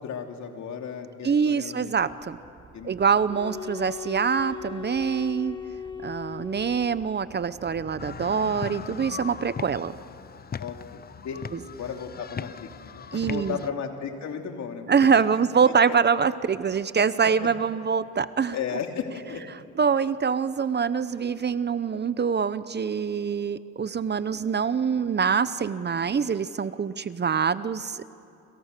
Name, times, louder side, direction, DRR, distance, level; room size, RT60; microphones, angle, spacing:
voice 1, 0.0-1.9 2.7-2.9 6.3-6.4 10.6-11.4 11.7-14.9 15.3-15.4 17.4-17.5 18.5-19.4, left 7 dB, 65° left, 4 dB, 2.9 m, -35 dB
voice 2, 1.2-2.4 2.8-5.6 6.0-10.0 11.5-11.6 13.1-13.6 14.9-18.6 19.8-28.1, right 6 dB, 35° right, 15 dB, 0.8 m, -24 dB
sound 1, 2.0-8.2, right 5 dB, 50° right, 3.4 m, -52 dB
sound 2, 3.2-7.2, left 7 dB, 15° left, 2.3 m, -38 dB
sound 3, 8.0-13.7, left 7 dB, 30° left, 0.7 m, -39 dB
28.5 x 27.0 x 6.8 m, 2.6 s
cardioid pair, 90°, 30 cm